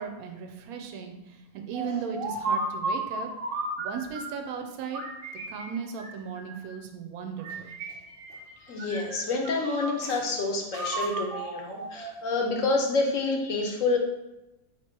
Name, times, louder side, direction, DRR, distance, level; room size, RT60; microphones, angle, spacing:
voice 1, 0.0-3.3 3.8-5.0 5.5-7.7, right 6 dB, 80° right, 4 dB, 1.0 m, -36 dB
sound 1, 1.7-4.5 4.9-6.7 7.4-8.5 8.8-10.2 10.7-12.5, right 2 dB, 55° right, 0.6 m, -34 dB
voice 2, 8.6-14.0, left 3 dB, 65° left, 1 dB, 1.1 m, -28 dB
3.6 x 2.9 x 4.5 m, 0.95 s
omnidirectional pair, 1.6 m